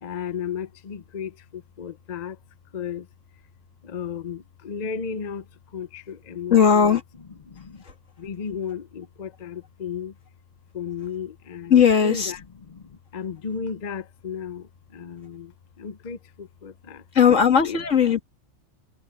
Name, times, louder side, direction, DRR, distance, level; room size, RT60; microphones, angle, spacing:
voice 1, 0.0-2.4 2.7-3.1 3.8-5.4 5.7-7.0 7.5-7.8 8.2-10.1 10.7-15.5 15.8-17.0 17.6-17.8, left 7 dB, 40° left, 0.8 m, -34 dB
voice 2, 6.5-7.0 11.7-12.3 17.1-18.2, left 7 dB, 80° left, 2.1 m, -17 dB
omnidirectional pair, 1.3 m